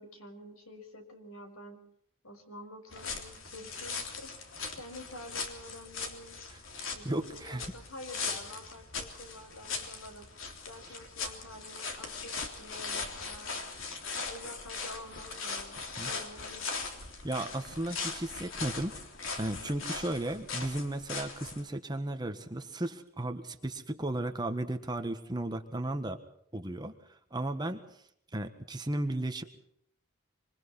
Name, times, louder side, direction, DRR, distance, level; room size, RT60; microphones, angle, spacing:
voice 1, 0.0-1.8 2.2-6.4 6.9-10.3 10.7-12.3 12.6-13.6 14.2-16.7, left 1 dB, 85° left, 5 dB, 5.7 m, -48 dB
sound 1, 2.9-21.6, left 4 dB, 65° left, 3.5 m, -40 dB
voice 2, 6.8-7.7 16.0-16.1 17.2-19.0 19.4-26.2 26.5-28.0 28.3-29.4, right 1 dB, 20° right, 7 dB, 1.5 m, -35 dB
26.0 x 25.0 x 4.3 m, 0.71 s
head